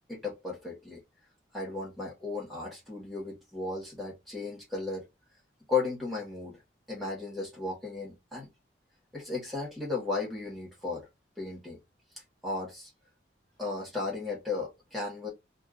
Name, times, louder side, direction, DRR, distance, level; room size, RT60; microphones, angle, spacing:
voice 1, 0.1-1.0 1.5-5.0 5.7-6.6 6.9-8.5 9.1-11.1 11.4-11.8 12.4-12.9 13.6-15.3, left 3 dB, ahead, 1.2 m, -35 dB
2.5 x 2.4 x 2.4 m
head